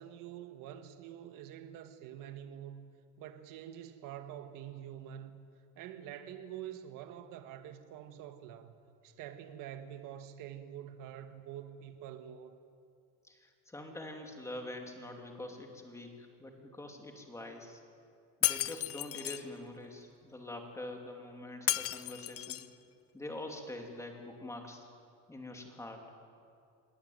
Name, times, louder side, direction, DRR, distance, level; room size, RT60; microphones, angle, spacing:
voice 1, 0.0-2.9 3.2-5.4 5.8-12.6, right 10 dB, 60° right, 8 dB, 1.8 m, -46 dB
voice 2, 13.2-17.8 18.4-22.6 23.1-24.8 25.3-26.0, left 1 dB, 10° left, 2 dB, 2.9 m, -45 dB
Shatter, 18.4-19.4 21.7-22.7, left 14 dB, 40° left, 0.7 m, -33 dB
25.5 x 19.0 x 9.4 m, 2.3 s
cardioid pair, 155°, 37 cm